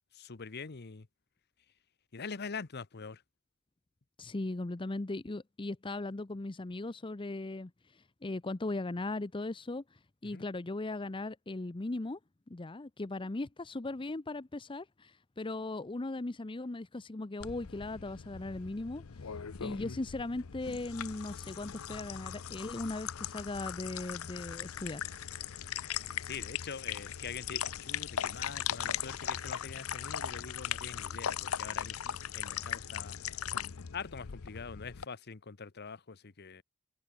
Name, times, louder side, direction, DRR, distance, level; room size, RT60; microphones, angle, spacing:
voice 1, 0.1-1.1 2.1-3.2 10.3-10.4 26.2-33.2 33.9-36.6, left 5 dB, 50° left, 0.9 m, -44 dB
voice 2, 4.2-12.2 12.5-19.0 19.6-25.1, left 2 dB, 25° left, 0.6 m, -38 dB
sound 1, 17.4-35.0, left 9 dB, 90° left, 0.7 m, -39 dB
open air
head